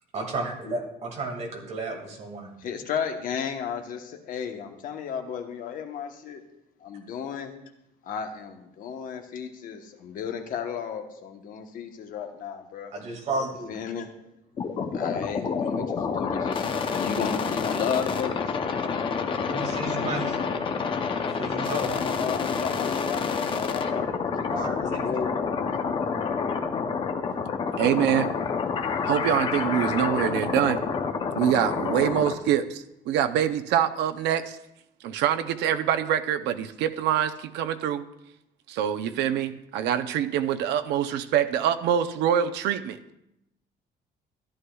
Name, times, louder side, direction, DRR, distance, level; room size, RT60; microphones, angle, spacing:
voice 1, 0.1-2.5 12.9-13.7 19.5-20.4 21.3-22.2 24.5-25.0, right 2 dB, 40° right, 1 dB, 2.0 m, -33 dB
voice 2, 2.6-6.4 6.8-7.5 8.0-12.9 13.7-14.1 14.9-18.6 21.5-24.1 24.4-25.4, left 7 dB, 55° left, 5 dB, 1.0 m, -33 dB
sound 1, 14.6-32.3, left 5 dB, 30° left, 0.6 m, -28 dB
voice 3, 27.8-28.3 29.0-30.8 31.3-34.6 35.0-38.1 38.7-43.0, right 10 dB, 85° right, 9 dB, 0.6 m, -25 dB
14.0 x 11.0 x 2.3 m, 0.82 s
cardioid pair, 180°, 17 cm